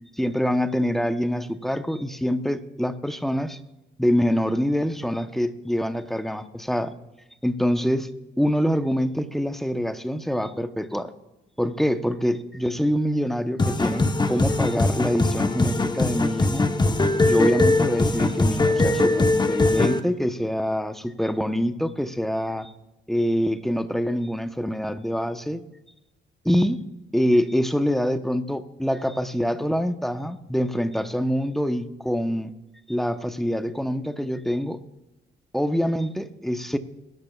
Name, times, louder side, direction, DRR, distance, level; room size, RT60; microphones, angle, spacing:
voice 1, 0.2-3.6 4.0-6.9 7.4-8.1 8.4-11.1 11.6-16.7 17.2-22.7 23.1-25.6 26.4-26.8 27.1-32.5 32.9-34.8 35.5-36.8, equal, ahead, 9 dB, 0.9 m, -25 dB
sound 1, 13.6-20.0, left 2 dB, 20° left, 1.1 m, -21 dB
22.0 x 12.0 x 2.4 m, 0.99 s
cardioid pair, 90°, 20 cm